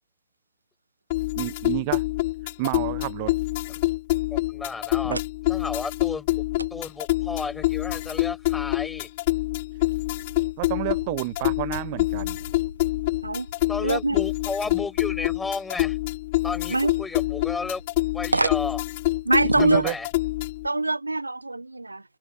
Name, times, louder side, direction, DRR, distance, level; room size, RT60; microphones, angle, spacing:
sound 1, 1.1-20.7, left 19 dB, 50° left, 0.9 m, -26 dB
voice 1, 1.4-2.0 2.6-3.3 5.1-5.2 10.6-12.4 19.5-19.9, right 25 dB, 50° right, 0.5 m, -29 dB
voice 2, 4.5-5.1 5.5-6.3 6.7-9.1 13.7-16.0 16.4-17.8 18.1-18.8 19.7-20.1, left 4 dB, 10° left, 4.9 m, -32 dB
Wind, 7.5-20.6, left 4 dB, 75° left, 7.7 m, -48 dB
voice 3, 13.8-14.2 16.7-16.9 18.3-18.5 19.2-19.9 20.6-22.0, right 2 dB, 85° right, 1.2 m, -23 dB
figure-of-eight pair, 90°, 0 cm